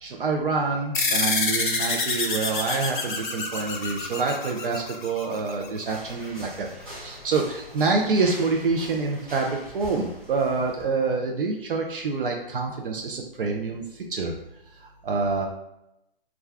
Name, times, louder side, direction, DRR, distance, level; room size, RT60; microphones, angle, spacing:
voice 1, 0.0-6.7 6.9-14.3 14.7-15.5, right 4 dB, 60° right, 1 dB, 0.5 m, -27 dB
sound 1, 0.9-5.8, left 3 dB, 55° left, 0.6 m, -27 dB
sound 2, 5.8-10.9, equal, 20° right, 1.1 m, -43 dB
2.4 x 2.1 x 3.3 m, 0.86 s
figure-of-eight pair, 140°, 30 cm